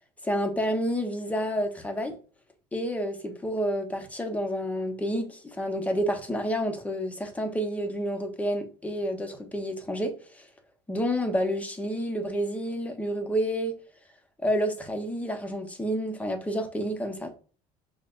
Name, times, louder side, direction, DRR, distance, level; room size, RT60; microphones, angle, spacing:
voice 1, 0.2-2.1 2.7-10.4 10.9-13.7 14.4-17.3, equal, 10° left, 0.8 m, -29 dB
5.6 x 2.1 x 2.5 m
supercardioid pair, 110°, 14 cm